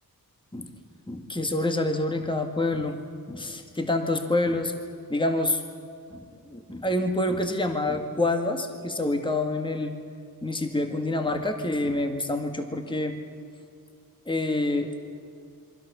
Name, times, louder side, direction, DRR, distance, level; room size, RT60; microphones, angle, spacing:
voice 1, 1.1-3.0 3.3-4.7 5.1-5.6 6.1-9.9 10.4-13.2 14.3-15.0, left 2 dB, 15° left, 5 dB, 1.9 m, -27 dB
28.0 x 23.5 x 7.0 m, 2.3 s
wide cardioid pair, 105°, 36 cm